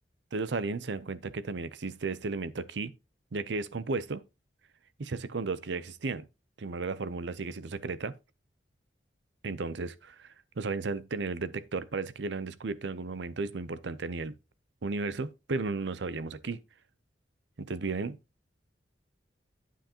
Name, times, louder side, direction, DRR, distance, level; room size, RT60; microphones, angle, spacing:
voice 1, 0.3-2.9 3.3-4.2 5.0-6.3 6.6-8.1 9.4-14.4 14.8-16.6 17.6-18.2, right 3 dB, 75° right, 0.6 m, -34 dB
9.1 x 7.8 x 2.9 m
head